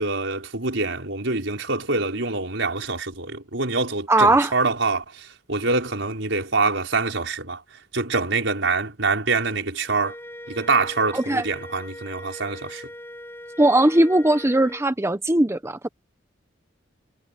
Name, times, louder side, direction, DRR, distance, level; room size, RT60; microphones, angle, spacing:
voice 1, 0.0-7.6 7.9-10.1 10.5-12.8, right 3 dB, 80° right, 4.8 m, -25 dB
voice 2, 4.1-4.5 11.1-11.4 13.6-15.9, right 1 dB, 15° right, 0.9 m, -19 dB
Wind instrument woodwind instrument, 10.0-14.9, left 1 dB, 15° left, 4.5 m, -40 dB
head